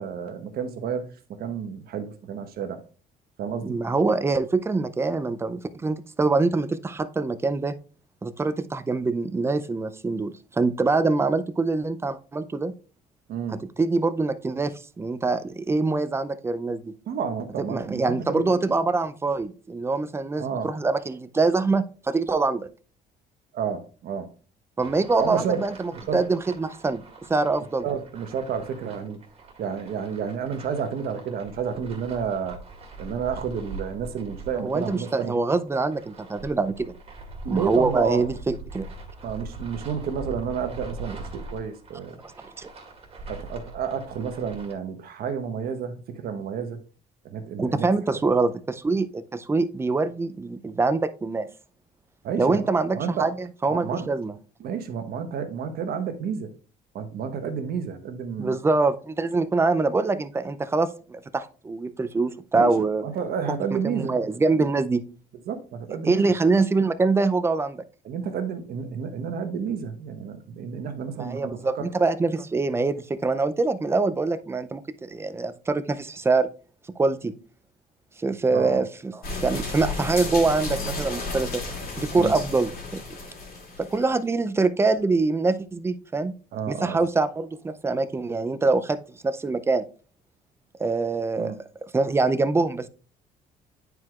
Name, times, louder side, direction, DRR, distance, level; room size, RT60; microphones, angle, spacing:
voice 1, 0.0-2.8 3.4-3.8 13.3-13.6 17.1-18.6 20.4-20.7 23.5-24.3 25.2-25.7 26.1-26.2 27.8-29.2 29.6-32.6 33.0-35.3 37.4-38.3 39.2-42.2 43.3-46.8 47.2-47.9 52.2-53.3 53.7-54.1 54.6-56.5 56.9-58.6 62.5-62.7 63.0-64.1 65.5-66.3 68.0-71.9 78.5-78.8 82.1-82.4 86.5-87.0 91.4-91.6, right 7 dB, 65° right, 1.1 m, -30 dB
voice 2, 3.6-7.7 8.2-12.7 13.5-16.9 17.6-22.7 24.8-27.0 27.3-27.9 34.6-36.9 37.5-38.9 42.6-42.7 47.6-51.5 52.4-54.3 58.4-63.0 63.7-65.0 66.0-67.8 71.2-76.5 77.0-77.3 78.2-81.6 82.0-83.0 83.8-86.3 86.7-89.0 89.2-89.8 90.8-91.5 91.9-92.9, right 3 dB, 15° right, 0.4 m, -24 dB
sound 1, 24.8-44.7, right 3 dB, 35° right, 1.9 m, -42 dB
sound 2, 79.2-84.1, left 2 dB, 60° left, 2.4 m, -33 dB
9.5 x 4.6 x 2.4 m
cardioid pair, 110°, 17 cm